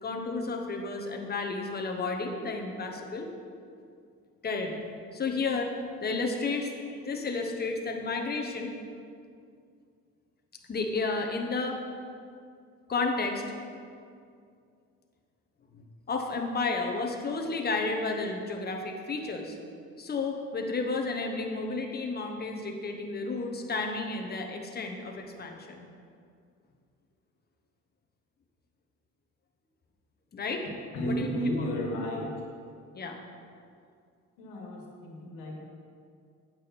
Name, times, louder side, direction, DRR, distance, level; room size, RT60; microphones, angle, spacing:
voice 1, 0.0-3.3 4.4-4.8 5.1-5.7 6.0-8.7 10.7-11.8 12.9-13.4 15.7-19.6 20.0-25.9 30.3-30.7 31.1-31.3 31.6-31.7 32.9-33.2, left 3 dB, 30° left, 2 dB, 1.2 m, -32 dB
voice 2, 30.9-32.3 34.4-35.6, equal, 85° left, 0 dB, 1.8 m, -33 dB
8.5 x 7.3 x 4.3 m, 2.3 s
cardioid pair, 90°, 31 cm